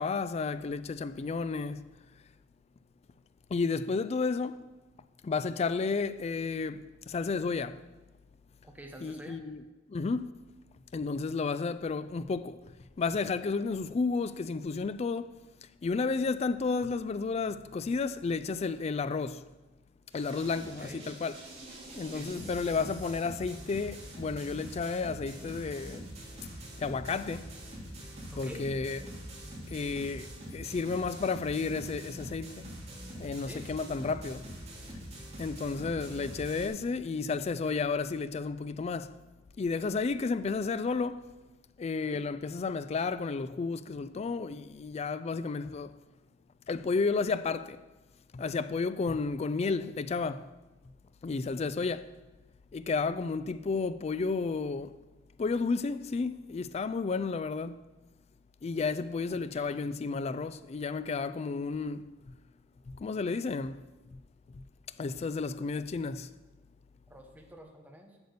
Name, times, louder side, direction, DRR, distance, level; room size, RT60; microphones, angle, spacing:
voice 1, 0.0-2.0 3.5-4.7 5.2-7.8 9.0-10.3 10.9-15.4 15.8-19.5 20.1-21.4 22.0-26.1 26.8-27.5 28.4-29.0 29.7-32.7 33.2-34.5 35.4-39.2 39.6-41.3 41.8-46.0 46.7-47.8 48.3-50.5 51.2-52.1 52.7-55.0 55.4-57.8 58.6-62.3 62.9-64.2 64.5-64.6 65.0-66.3, left 4 dB, 35° left, 0.3 m, -32 dB
voice 2, 8.6-9.4 20.8-21.1 22.1-22.6 28.3-28.6 33.4-33.6 42.1-42.2 59.5-59.9 67.1-68.2, equal, 10° right, 1.1 m, -48 dB
sound 1, 20.1-36.7, right 1 dB, 35° right, 2.7 m, -44 dB
8.0 x 6.8 x 6.7 m
head